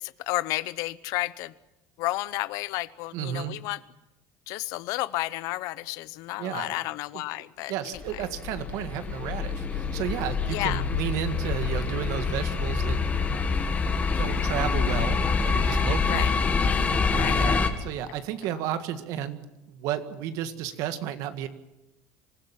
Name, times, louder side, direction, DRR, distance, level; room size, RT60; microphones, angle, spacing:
voice 1, 0.0-1.5 2.0-3.8 4.5-7.7 10.5-10.8 16.1-16.3 17.1-17.5, left 18 dB, 70° left, 17 dB, 0.8 m, -31 dB
voice 2, 3.1-3.6 6.4-6.8 7.1-7.2 7.7-13.0 14.2-15.2 15.4-16.3 17.1-21.5, right 10 dB, 70° right, 10 dB, 1.8 m, -32 dB
sound 1, 8.0-17.7, left 4 dB, 25° left, 2.2 m, -26 dB
25.5 x 15.5 x 7.6 m, 0.93 s
cardioid pair, 120°, 6 cm